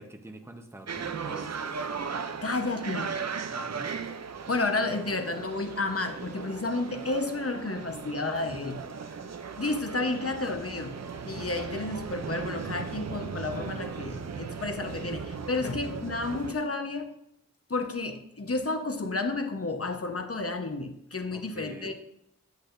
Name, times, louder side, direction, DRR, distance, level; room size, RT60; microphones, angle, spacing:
voice 1, 0.0-1.8 3.5-4.0 15.6-16.0 21.3-21.9, right 1 dB, 10° right, 4 dB, 0.8 m, -45 dB
sound 1, 0.9-16.5, right 5 dB, 50° right, 0.5 m, -37 dB
voice 2, 2.4-3.2 4.5-8.8 9.6-17.1 17.7-21.9, left 3 dB, 45° left, 6 dB, 0.9 m, -31 dB
8.4 x 8.3 x 2.6 m, 0.78 s
wide cardioid pair, 55°, 33 cm